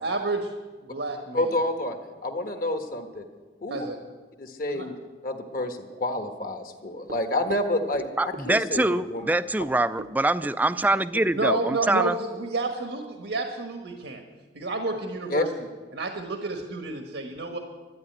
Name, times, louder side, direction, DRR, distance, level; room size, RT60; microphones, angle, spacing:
voice 1, 0.0-0.5 0.8-1.5 3.7-4.0 4.7-4.9 9.2-9.3 11.3-14.2 14.5-15.5 15.9-17.6, right 2 dB, 80° right, 4 dB, 1.3 m, -30 dB
voice 2, 1.3-2.0 2.2-3.2 3.6-3.9 4.4-4.9 5.2-9.3 15.3-15.4, left 1 dB, 50° left, 5 dB, 1.4 m, -29 dB
Run, 7.1-8.5 8.7-9.3 9.6-11.0 11.2-11.3 11.7-11.8, right 2 dB, 60° right, 0.8 m, -41 dB
voice 3, 8.2-12.2, right 2 dB, 10° right, 14 dB, 0.3 m, -24 dB
12.5 x 9.5 x 9.3 m, 1.4 s
head